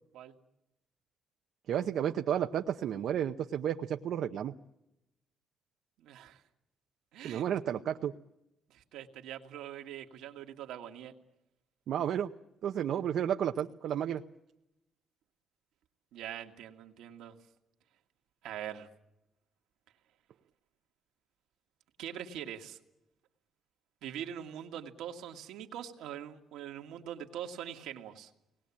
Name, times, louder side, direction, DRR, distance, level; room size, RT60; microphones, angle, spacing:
voice 1, 1.7-4.5 7.2-8.1 11.9-12.3 12.6-14.2, right 9 dB, 70° right, 5 dB, 0.8 m, -32 dB
voice 2, 6.0-6.4 7.1-7.4 8.7-11.1 16.1-17.4 18.4-18.9 22.0-22.8 24.0-28.3, right 10 dB, 90° right, 4 dB, 2.0 m, -43 dB
24.0 x 19.5 x 8.6 m, 0.89 s
cardioid pair, 85°, 0 cm